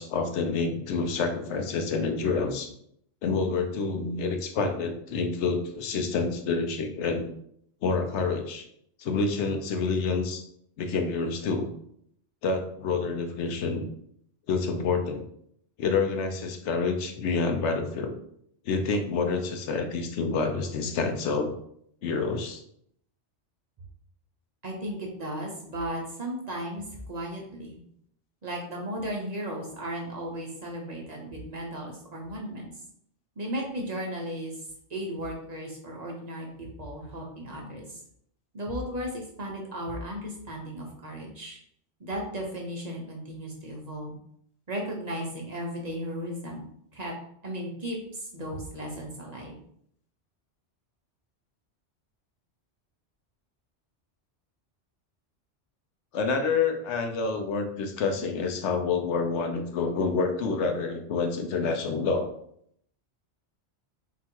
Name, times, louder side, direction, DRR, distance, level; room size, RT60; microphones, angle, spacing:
voice 1, 0.0-2.7 3.2-7.3 7.8-8.6 9.0-10.4 10.8-11.7 12.4-13.9 14.5-15.2 15.8-18.1 18.6-21.6 22.0-22.6 56.1-62.3, left 4 dB, 80° left, 6 dB, 0.9 m, -28 dB
voice 2, 24.6-27.8 28.4-32.7 33.4-34.6 34.9-38.0 38.5-41.6 42.0-44.1 44.7-46.7 46.9-47.1 47.4-49.6, equal, 40° right, -1 dB, 0.8 m, -35 dB
3.8 x 2.5 x 4.4 m, 0.68 s
omnidirectional pair, 1.2 m